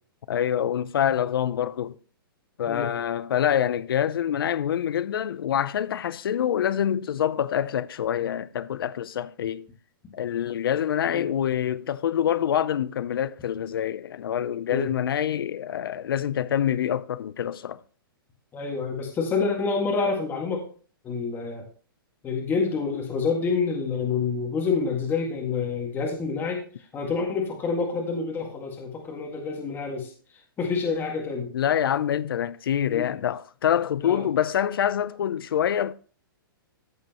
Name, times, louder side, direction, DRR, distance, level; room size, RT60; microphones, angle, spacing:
voice 1, 0.3-2.0 2.6-9.7 10.1-17.8 31.5-35.9, left 10 dB, 75° left, 0.6 m, -26 dB
voice 2, 18.5-20.6 21.0-21.6 22.2-26.6 26.9-30.1 30.6-31.5 32.9-33.1 34.0-34.2, left 4 dB, 15° left, 1.9 m, -27 dB
14.0 x 5.3 x 2.9 m
hypercardioid pair, 150°, 12 cm